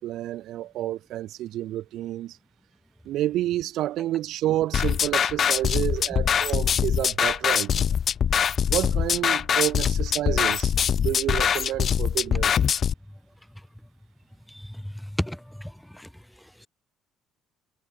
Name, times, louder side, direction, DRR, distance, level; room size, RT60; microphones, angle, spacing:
voice 1, 0.0-2.4 3.0-8.0 8.7-12.6, right 14 dB, 65° right, 1.4 m, -29 dB
sound 1, 4.7-12.9, left 8 dB, 50° left, 0.4 m, -23 dB
voice 2, 14.5-16.1, equal, 5° left, 1.9 m, -34 dB
hypercardioid pair, 60°, 0 cm